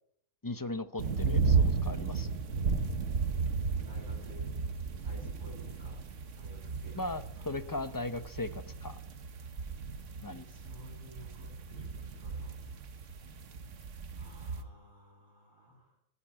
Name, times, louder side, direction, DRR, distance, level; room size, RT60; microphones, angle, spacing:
voice 1, 0.4-2.3 6.9-9.0 10.2-10.4, left 2 dB, 20° left, 11 dB, 0.6 m, -38 dB
sound 1, 1.0-14.6, right 5 dB, 65° right, 1.5 m, -34 dB
voice 2, 3.8-4.5 5.0-6.0 6.3-7.0 10.2-12.5 14.1-15.9, right 1 dB, 15° right, -7 dB, 8.0 m, -54 dB
14.5 x 9.9 x 8.9 m, 0.75 s
omnidirectional pair, 1.4 m